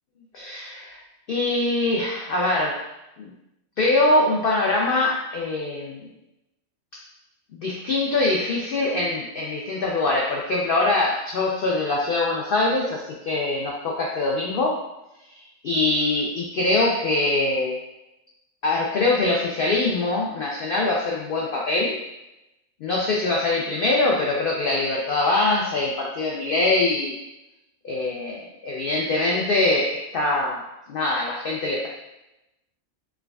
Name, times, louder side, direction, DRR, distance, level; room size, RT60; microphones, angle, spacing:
voice 1, 0.3-1.0 1.3-2.9 3.2-3.3 3.8-6.1 6.9-7.0 7.6-14.8 15.1-17.8 18.6-22.0 22.8-27.2 27.8-31.9, left 2 dB, 65° left, -2 dB, 0.5 m, -23 dB
4.6 x 2.3 x 2.2 m, 0.92 s
omnidirectional pair, 1.4 m